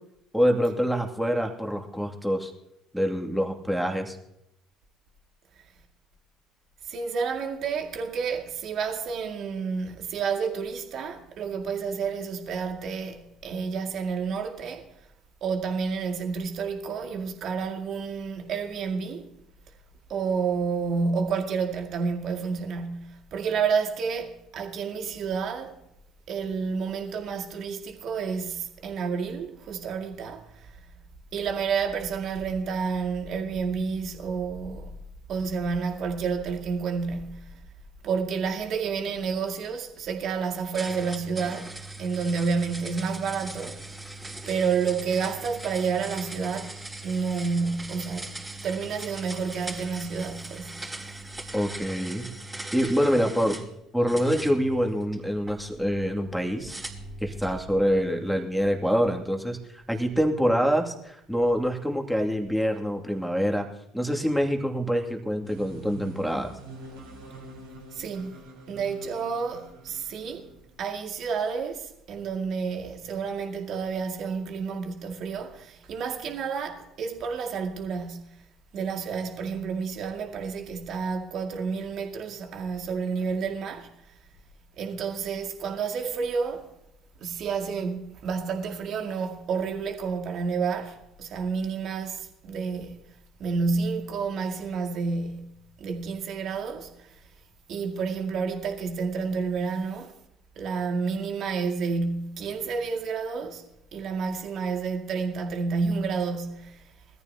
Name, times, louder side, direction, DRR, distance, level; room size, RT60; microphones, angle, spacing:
voice 1, 0.3-2.5 2.9-4.2 51.5-52.3 52.7-53.6 53.9-56.8 57.2-63.7 63.9-66.5, equal, ahead, 2.5 m, -25 dB
voice 2, 6.9-14.9 15.4-19.3 20.1-25.8 26.3-30.7 31.3-34.9 35.3-37.6 38.0-43.8 44.5-50.8 67.9-68.4 68.7-70.5 70.8-78.4 78.7-83.9 84.8-86.7 87.2-93.0 93.4-97.2 97.7-100.1 100.6-103.6 103.9-106.8, right 5 dB, 50° right, 2.2 m, -30 dB
sound 1, 40.7-53.7 54.1-55.6 56.7-57.6, right 2 dB, 15° right, 4.3 m, -40 dB
sound 2, 65.4-70.8, right 2 dB, 75° right, 3.7 m, -46 dB
21.5 x 14.0 x 2.9 m
figure-of-eight pair, 55°, 0 cm